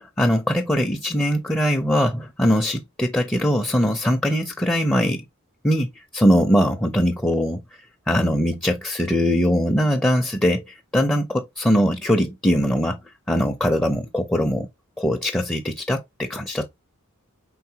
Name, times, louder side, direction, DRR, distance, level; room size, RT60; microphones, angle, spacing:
voice 1, 0.2-5.2 5.6-7.6 8.1-13.0 13.3-14.7 15.0-16.7, equal, 5° left, 0.5 m, -21 dB
4.7 x 3.7 x 2.8 m
head